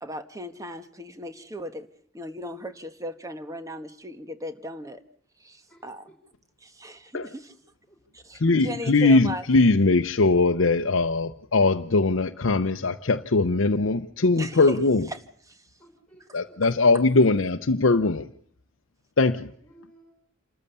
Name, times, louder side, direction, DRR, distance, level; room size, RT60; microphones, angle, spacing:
voice 1, 0.0-1.9 2.1-5.0 5.4-6.1 6.6-7.5 8.1-9.4 14.4-14.8 15.1-15.6, equal, 15° right, 1.4 m, -37 dB
voice 2, 5.7-6.1 7.9-8.0 15.8-17.2 19.6-20.1, right 1 dB, 5° left, 4.7 m, -56 dB
voice 3, 8.4-15.0 16.3-18.3 19.2-19.5, left 3 dB, 75° left, 0.8 m, -21 dB
28.0 x 14.0 x 6.9 m
head